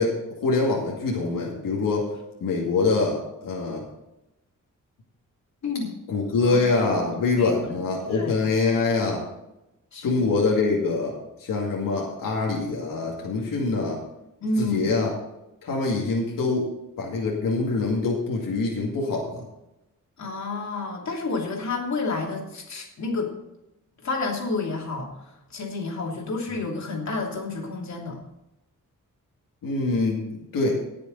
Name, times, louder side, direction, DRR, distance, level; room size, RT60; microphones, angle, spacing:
voice 1, 0.0-2.1 2.4-3.8 6.1-9.3 10.0-14.0 14.6-15.1 15.6-16.7 17.0-19.4 29.6-30.8, left 3 dB, 85° left, -2 dB, 2.3 m, -24 dB
voice 2, 5.6-6.0 6.4-6.6 7.4-7.5 8.1-8.4 9.9-10.2 14.4-14.9 20.2-23.4 24.0-28.2, left 3 dB, 55° left, -1 dB, 3.0 m, -30 dB
18.5 x 6.8 x 4.1 m, 0.91 s
wide cardioid pair, 125°, 32 cm